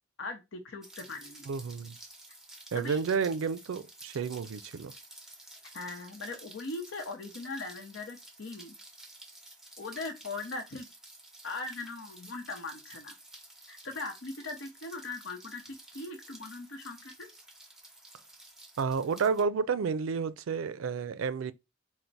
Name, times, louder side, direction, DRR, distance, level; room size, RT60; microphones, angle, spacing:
voice 1, 0.2-1.5 2.7-3.0 5.7-8.7 9.8-10.8 11.4-13.1 13.7-17.3, left 3 dB, 70° left, 0.8 m, -40 dB
Rain, 0.8-19.4, right 2 dB, 5° right, 0.7 m, -52 dB
voice 2, 1.5-2.0 2.7-4.9 18.8-21.5, right 5 dB, 85° right, 0.4 m, -31 dB
4.4 x 2.1 x 4.0 m
head